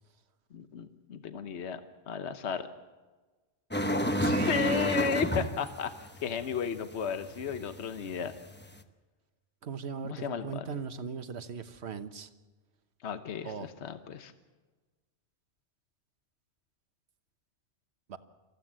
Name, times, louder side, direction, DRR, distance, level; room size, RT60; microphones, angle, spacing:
voice 1, 0.5-1.8 2.1-2.7 4.2-8.3 10.0-10.6 13.0-14.3, left 6 dB, 70° left, 9 dB, 1.2 m, -34 dB
sound 1, 3.7-8.8, equal, 10° left, 0.9 m, -31 dB
voice 2, 4.2-5.5 9.6-12.3 13.4-13.7 18.1-18.2, right 6 dB, 70° right, 10 dB, 1.3 m, -39 dB
26.0 x 15.0 x 7.5 m, 1.3 s
omnidirectional pair, 1.2 m